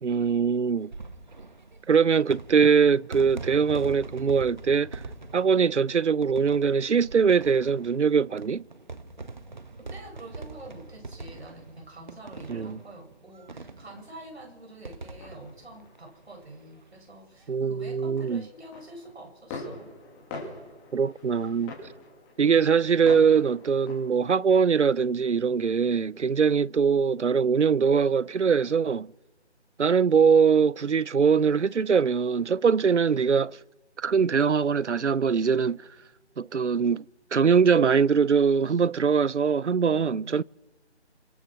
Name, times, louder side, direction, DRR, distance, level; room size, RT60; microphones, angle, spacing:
voice 1, 0.0-0.9 1.9-5.0 5.3-8.6 12.5-12.8 17.5-18.4 20.9-21.7 22.4-29.1 29.8-33.6 34.0-35.8 36.4-37.0 37.3-40.4, right 6 dB, 85° right, 0.8 m, -22 dB
sound 1, 0.8-16.8 17.1-17.2 17.4-17.5 18.8-19.0, right 3 dB, 40° right, 1.4 m, -43 dB
voice 2, 9.9-19.9 39.8-40.4, right 1 dB, 65° right, 7.9 m, -46 dB
sound 2, 15.2-16.5 16.9-17.4 17.7-24.8, left 3 dB, 10° left, 2.7 m, -44 dB
26.5 x 25.0 x 6.2 m
figure-of-eight pair, 170°, 34 cm